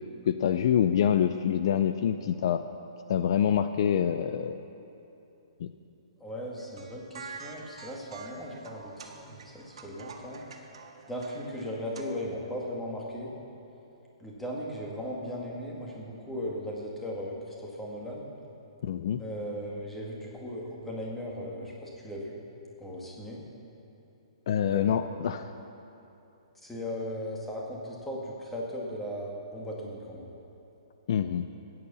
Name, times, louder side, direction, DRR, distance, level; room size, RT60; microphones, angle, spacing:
voice 1, 0.3-2.6 3.1-4.6 5.6-5.7 18.8-19.2 24.5-25.5 31.1-31.5, left 9 dB, 50° left, 10 dB, 0.5 m, -26 dB
voice 2, 6.2-10.4 11.1-13.3 14.2-18.3 19.2-22.4 22.8-23.4 24.7-25.1 26.6-30.4, equal, 5° left, -3 dB, 2.0 m, -37 dB
sound 1, 6.6-12.0, right 5 dB, 75° right, 1.7 m, -47 dB
15.0 x 9.6 x 6.9 m, 2.9 s
hypercardioid pair, 160°, 3 cm